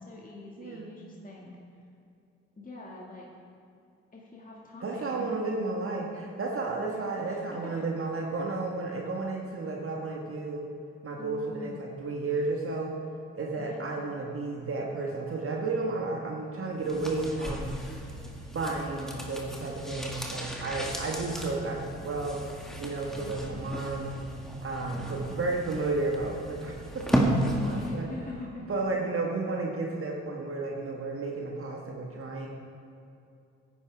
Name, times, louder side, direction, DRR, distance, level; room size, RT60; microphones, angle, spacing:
voice 1, 0.0-1.6 2.6-3.3 4.1-5.3 6.9-7.8 11.2-11.8 13.6-14.1 23.1-23.7 24.9-25.4 27.7-28.7, left 2 dB, 25° left, -3 dB, 2.1 m, -44 dB
voice 2, 0.6-1.1 4.8-10.7 11.0-12.9 13.4-17.7 18.5-22.4 22.8-24.2 24.6-28.1 28.7-32.5, right 3 dB, 40° right, -1 dB, 1.7 m, -32 dB
sound 1, 16.8-28.0 28.3-28.4, equal, ahead, 2.1 m, -34 dB
16.5 x 9.4 x 3.6 m, 2.5 s
hypercardioid pair, 45°, 33 cm